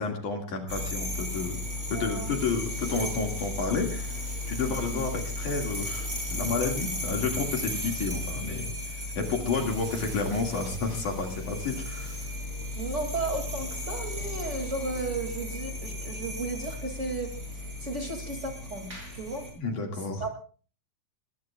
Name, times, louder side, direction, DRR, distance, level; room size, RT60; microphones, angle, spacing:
voice 1, 0.0-1.6 1.9-12.2 19.6-20.2, left 4 dB, 50° left, 2 dB, 2.7 m, -31 dB
sound 1, 0.7-19.5, left 1 dB, 15° right, 6.5 m, -35 dB
voice 2, 1.9-2.3 4.6-5.0 12.8-17.3 17.8-19.5 20.2-20.3, right 3 dB, 35° right, 2 dB, 1.0 m, -34 dB
sound 2, 2.2-15.0, right 5 dB, 80° right, 7.9 m, -51 dB
22.0 x 21.0 x 2.4 m, 0.40 s
omnidirectional pair, 5.9 m